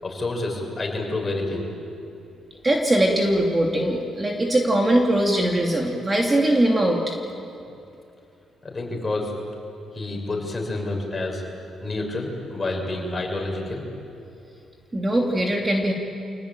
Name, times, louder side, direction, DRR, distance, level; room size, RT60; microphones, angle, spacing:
voice 1, 0.0-1.7 8.6-9.3 9.9-11.4 11.8-13.8, left 2 dB, 25° left, 0 dB, 6.8 m, -28 dB
voice 2, 2.6-7.1 14.9-15.9, right 1 dB, 20° right, 0 dB, 2.9 m, -21 dB
28.5 x 18.5 x 9.1 m, 2.7 s
cardioid pair, 90°, 0 cm